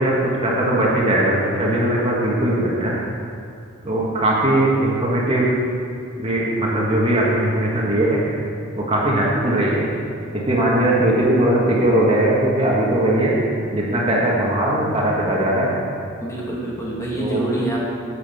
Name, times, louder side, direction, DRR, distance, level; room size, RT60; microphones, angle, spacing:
voice 1, 0.0-3.0 3.8-5.5 6.2-8.2 8.7-9.9 10.3-13.3 13.7-15.7 17.1-17.4, right 1 dB, 30° right, -4 dB, 1.6 m, -19 dB
voice 2, 16.2-17.8, right 1 dB, 15° left, -6 dB, 2.3 m, -26 dB
10.0 x 8.5 x 5.6 m, 2.3 s
head